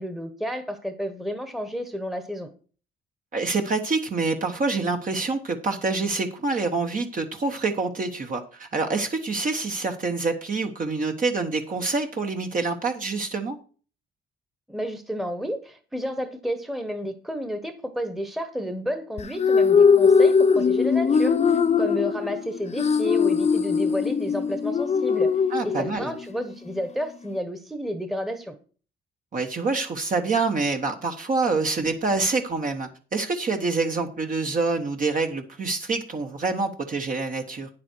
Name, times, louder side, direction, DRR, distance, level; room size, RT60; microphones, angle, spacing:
voice 1, 0.0-2.5 14.7-25.3 25.6-28.5, equal, ahead, 9 dB, 1.2 m, -31 dB
voice 2, 3.3-13.6 25.5-26.1 29.3-37.7, right 3 dB, 40° right, 3 dB, 1.3 m, -26 dB
sound 1, 19.2-26.2, left 6 dB, 35° left, 0.6 m, -20 dB
9.2 x 7.6 x 4.5 m, 0.39 s
cardioid pair, 90°, 20 cm